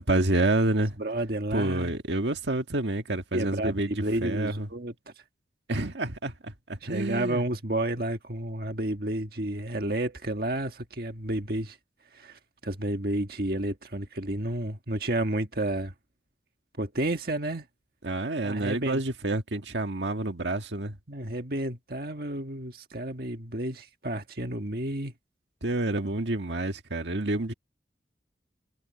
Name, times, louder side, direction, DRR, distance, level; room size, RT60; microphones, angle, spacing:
voice 1, 0.0-1.0 1.5-4.7 5.7-7.4 18.0-21.0 25.6-27.5, right 2 dB, 80° right, 1.7 m, -28 dB
voice 2, 1.0-1.9 3.3-4.9 6.8-11.8 12.1-15.9 16.8-17.6 18.4-19.0 21.1-25.1, right 1 dB, 55° right, 1.6 m, -31 dB
head